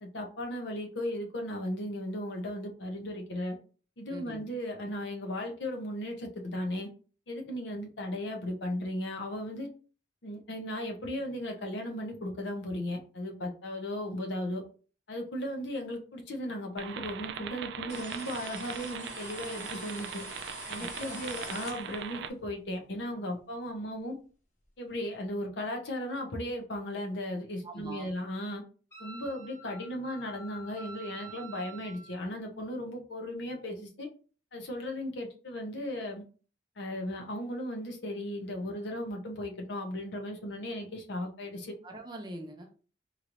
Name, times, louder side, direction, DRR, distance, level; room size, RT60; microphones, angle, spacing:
voice 1, 0.0-3.6 4.0-6.9 7.3-9.7 10.2-14.6 15.1-20.2 20.7-24.2 24.8-28.6 29.0-34.1 34.5-36.2 36.8-41.7, left 1 dB, 75° left, 3 dB, 0.8 m, -36 dB
voice 2, 4.1-4.5 20.8-21.2 27.6-28.1 41.8-42.8, right 1 dB, 25° right, 3 dB, 0.5 m, -43 dB
sound 1, 16.8-22.3, right 8 dB, 70° right, 0.3 m, -40 dB
sound 2, 17.9-22.2, left 2 dB, 40° left, 0.6 m, -45 dB
Wind instrument woodwind instrument, 28.9-32.1, right 3 dB, 15° left, 1.0 m, -48 dB
3.0 x 2.5 x 2.9 m, 0.38 s
head